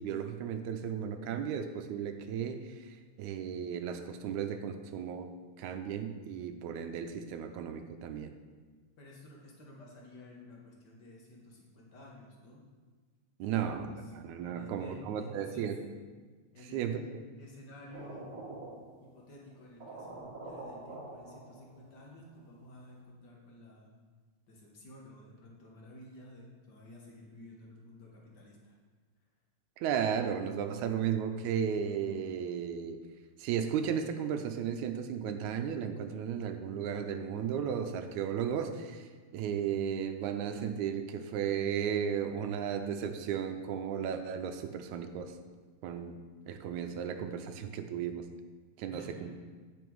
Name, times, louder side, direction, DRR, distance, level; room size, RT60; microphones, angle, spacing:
voice 1, 0.0-5.3 5.6-8.3 13.4-13.9 14.2-15.8 16.7-17.0 29.8-33.0 33.4-45.3 45.8-46.2 46.5-48.2 48.8-49.3, right 8 dB, 85° right, 7 dB, 2.0 m, -34 dB
voice 2, 9.0-12.6 13.4-14.1 14.4-15.7 16.5-18.3 19.0-23.9 24.5-28.8 48.9-49.3, left 1 dB, 55° left, -2 dB, 1.2 m, -52 dB
sound 1, 17.9-19.2 19.5-19.6 19.8-22.0, right 2 dB, 50° right, 2.0 m, -46 dB
8.8 x 5.8 x 4.6 m, 1.4 s
omnidirectional pair, 3.3 m